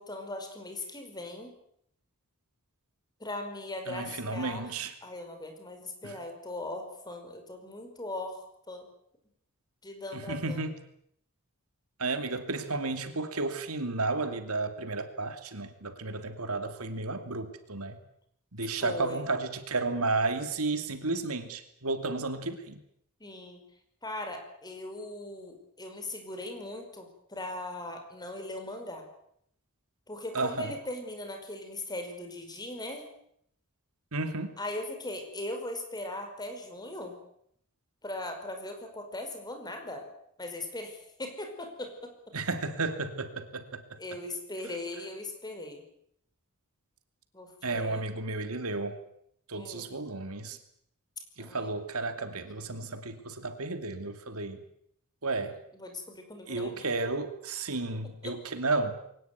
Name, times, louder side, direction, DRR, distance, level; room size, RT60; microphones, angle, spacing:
voice 1, 0.0-1.6 3.2-4.6 5.0-8.9 9.8-10.7 18.8-19.3 23.2-23.6 24.0-29.1 30.1-33.1 34.6-37.2 38.0-40.1 40.4-42.1 44.0-45.9 47.3-48.1 49.5-49.9 51.4-51.7 55.4-56.9 58.2-58.3, left 2 dB, 20° left, 5 dB, 5.2 m, -39 dB
voice 2, 3.9-4.9 6.0-6.2 10.1-10.7 12.0-18.0 18.5-22.8 30.3-30.7 34.1-34.6 42.3-44.0 47.6-49.0 49.5-50.6 51.4-54.6 55.2-55.5 56.5-59.0, right 3 dB, 75° right, 9 dB, 2.6 m, -32 dB
22.5 x 19.0 x 9.3 m, 0.71 s
head